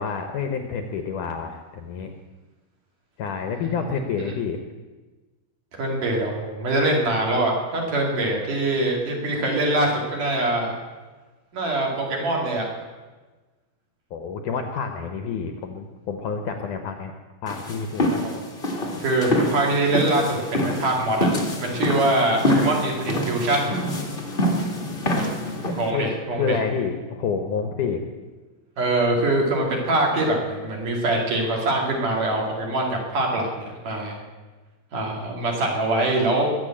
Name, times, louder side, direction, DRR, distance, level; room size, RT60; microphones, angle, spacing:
voice 1, 0.0-2.1 3.2-4.6 14.1-17.1 17.4-18.1 25.7-26.1 26.4-28.0, left 6 dB, 70° left, 6 dB, 2.0 m, -28 dB
voice 2, 3.6-4.1 5.7-10.7 11.5-12.7 18.1-18.4 19.0-21.3 21.6-23.7 25.8-26.6 28.8-34.2 34.9-36.6, right 2 dB, 55° right, 0 dB, 3.8 m, -23 dB
sound 1, 17.5-25.9, left 1 dB, 40° left, 0.7 m, -25 dB
21.0 x 7.2 x 8.7 m, 1.3 s
omnidirectional pair, 4.6 m